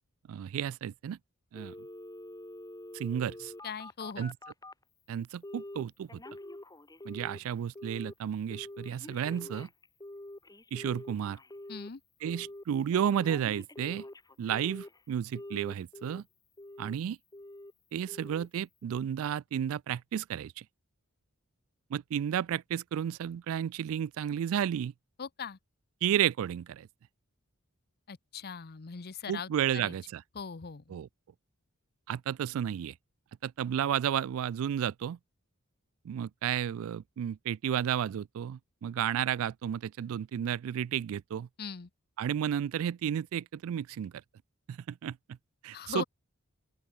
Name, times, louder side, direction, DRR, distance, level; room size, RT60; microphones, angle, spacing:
voice 1, 0.3-1.2 1.5-1.7 2.9-3.5 4.2-4.3 5.1-6.2 7.0-9.7 10.7-11.4 12.2-14.0 14.4-16.2 16.8-17.2 17.9-20.6 21.9-24.9 26.0-26.9 29.3-30.2 30.9-31.1 32.1-32.9 33.4-35.2 36.0-41.5 42.2-44.1 44.7-45.2 45.6-46.0, right 9 dB, 70° right, 0.3 m, -32 dB
Telephone, 1.5-4.8 5.4-5.8 6.1-7.4 7.8-8.1 8.5-11.9 12.3-12.6 12.9-15.0 15.4-16.2 16.6-17.0 17.3-17.7 18.1-18.5 18.8-18.9, left 1 dB, 15° left, 1.7 m, -46 dB
voice 2, 3.6-4.3 11.7-12.0 25.2-25.6 28.1-29.9 30.3-31.0 41.6-41.9 45.7-46.0, left 6 dB, 45° left, 0.7 m, -40 dB
open air
head